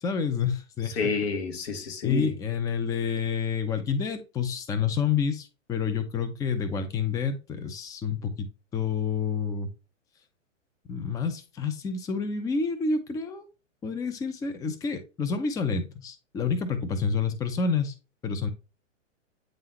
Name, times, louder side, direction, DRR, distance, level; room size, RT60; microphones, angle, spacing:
voice 1, 0.0-1.1 2.0-9.7 10.9-13.5 13.8-17.9 18.2-18.5, left 5 dB, 10° left, 0.5 m, -29 dB
voice 2, 0.8-2.3, left 5 dB, 50° left, 1.6 m, -29 dB
8.9 x 3.7 x 2.9 m
hypercardioid pair, 120°, 38 cm